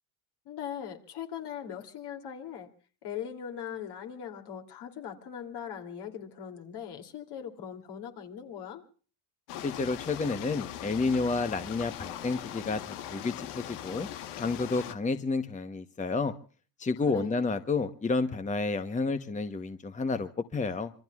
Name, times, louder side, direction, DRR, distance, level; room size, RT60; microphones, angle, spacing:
voice 1, 0.4-2.7 3.0-8.8 17.0-17.4, left 9 dB, 60° left, 4 dB, 3.0 m, -40 dB
sound 1, 9.5-14.9, left 11 dB, 90° left, 1.4 m, -40 dB
voice 2, 9.6-14.1 14.4-16.3 16.8-20.9, left 3 dB, 15° left, 9 dB, 1.0 m, -30 dB
26.0 x 23.0 x 2.4 m, 0.40 s
supercardioid pair, 95°, 45 cm